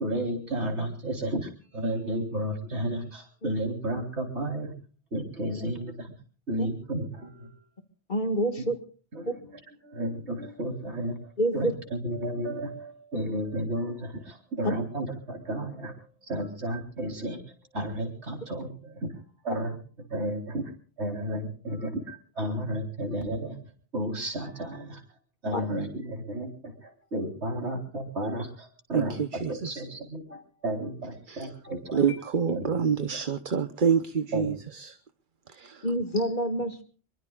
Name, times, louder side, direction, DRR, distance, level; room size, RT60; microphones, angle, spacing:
voice 1, 0.0-4.7 5.1-6.1 6.5-7.5 8.6-8.7 9.1-9.3 9.8-11.2 11.5-15.9 16.2-17.4 17.7-19.1 19.4-20.6 21.0-23.6 23.9-25.0 25.4-32.2 32.5-33.2 34.3-34.5, right 1 dB, 70° right, 3 dB, 4.5 m, -32 dB
voice 2, 8.1-8.8 9.3-9.4 11.4-11.7 14.6-14.7 25.5-25.6 35.8-36.8, right 1 dB, 45° left, 7 dB, 2.1 m, -27 dB
voice 3, 29.4-29.8 31.3-31.5 31.9-34.5 34.8-34.9 35.6-35.8, right 7 dB, 45° right, 11 dB, 1.1 m, -26 dB
25.5 x 23.0 x 2.5 m, 0.39 s
omnidirectional pair, 1.2 m